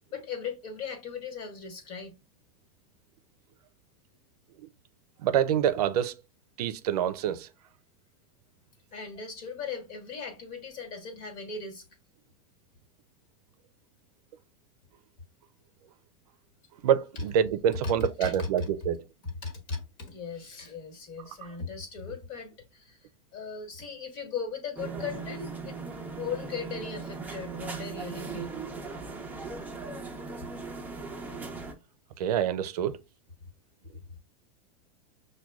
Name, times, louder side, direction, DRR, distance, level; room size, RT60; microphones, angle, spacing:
voice 1, 0.1-2.1 8.9-11.8 17.8-17.9 18.2-18.5 19.4-25.8 26.1-28.6, left 5 dB, 45° left, 1.4 m, -38 dB
voice 2, 5.2-6.2 6.6-7.5 16.8-19.0 21.4-21.6 31.3-31.5 32.2-33.0, right 9 dB, 85° right, 0.5 m, -27 dB
sound 1, 24.8-31.7, right 4 dB, 10° right, 0.6 m, -38 dB
6.0 x 2.2 x 2.3 m
supercardioid pair, 145°, 19 cm